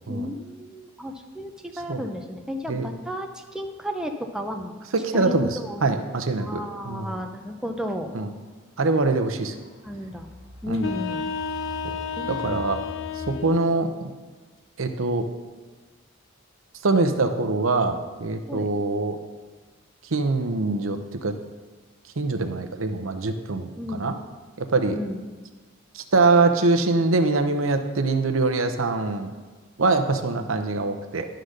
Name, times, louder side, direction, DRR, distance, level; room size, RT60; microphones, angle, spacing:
voice 1, 0.1-4.7 5.1-6.0 6.4-8.1 9.8-10.3 10.6-11.3 12.2-12.7 18.5-18.7 23.8-24.1 24.9-25.2 30.4-30.5, equal, 5° right, 3 dB, 0.6 m, -33 dB
sound 1, 4.1-4.2 4.9-5.3 6.3-6.4 8.2-8.5 9.0-13.5, left 1 dB, 80° left, 1.5 m, -44 dB
voice 2, 4.9-5.6 5.8-7.1 8.1-8.3 8.8-9.5 10.7-10.9 11.8-12.0 12.3-12.8 13.4-13.9 14.8-15.3 16.8-19.2 20.1-21.3 22.2-24.1 24.6-25.0 25.9-29.3 29.8-31.3, right 3 dB, 75° right, 6 dB, 0.8 m, -23 dB
sound 2, 10.7-13.7, left 6 dB, 65° left, 0.6 m, -31 dB
11.5 x 3.9 x 6.5 m, 1.4 s
head